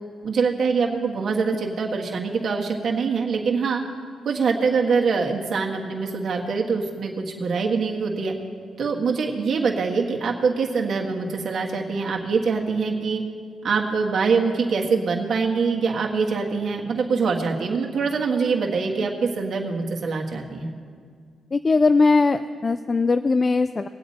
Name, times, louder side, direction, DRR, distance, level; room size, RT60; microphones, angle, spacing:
voice 1, 0.2-3.8 4.2-8.3 8.8-13.2 13.6-20.7, right 5 dB, 60° right, 0 dB, 1.5 m, -24 dB
voice 2, 21.5-23.9, left 3 dB, 35° left, 11 dB, 0.3 m, -20 dB
20.5 x 8.1 x 4.3 m, 2.1 s
cardioid pair, 75°, 0 cm